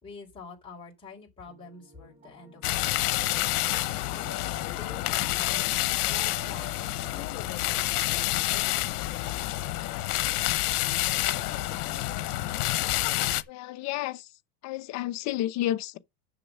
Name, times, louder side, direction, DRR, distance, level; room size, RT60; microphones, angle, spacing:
voice 1, 0.0-3.1 4.1-5.7 6.1-8.7, left 4 dB, 10° left, 3.8 m, -47 dB
sound 1, 1.5-12.3, equal, 20° right, 2.7 m, -50 dB
sound 2, 2.6-13.4, left 17 dB, 90° left, 0.9 m, -28 dB
voice 2, 13.5-14.3 14.6-16.0, left 14 dB, 40° left, 0.8 m, -31 dB
6.9 x 6.3 x 7.1 m
supercardioid pair, 150°, 44 cm